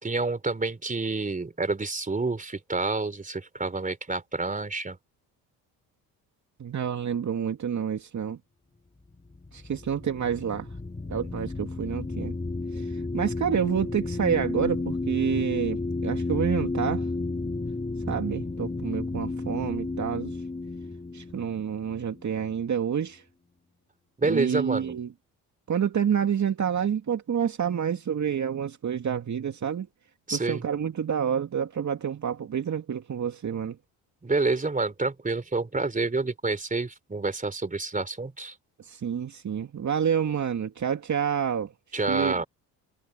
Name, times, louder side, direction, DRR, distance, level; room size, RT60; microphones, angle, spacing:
voice 1, 0.0-5.0 11.2-11.3 12.7-13.0 24.2-25.0 30.3-30.6 34.2-38.5 41.9-42.5, right 3 dB, 20° right, 3.7 m, -28 dB
voice 2, 6.6-8.4 9.5-10.7 11.1-12.3 12.7-17.0 18.1-20.4 21.1-23.2 24.3-25.1 25.7-29.9 30.3-33.8 38.8-41.7 42.1-42.4, right 8 dB, 45° right, 2.6 m, -28 dB
sound 1, 9.1-22.8, left 3 dB, 15° left, 3.2 m, -32 dB
supercardioid pair, 65°, 41 cm